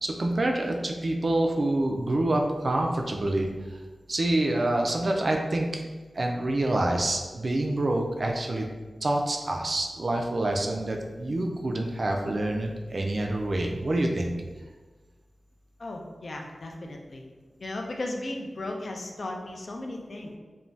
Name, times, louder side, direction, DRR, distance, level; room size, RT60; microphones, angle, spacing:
voice 1, 0.0-3.5 4.1-5.8 6.1-8.7 9.0-14.3, right 1 dB, 50° right, 2 dB, 0.3 m, -27 dB
voice 2, 15.8-17.2 17.6-20.4, left 2 dB, 60° left, 2 dB, 0.3 m, -36 dB
2.6 x 2.2 x 3.1 m, 1.3 s
wide cardioid pair, 90°, 0 cm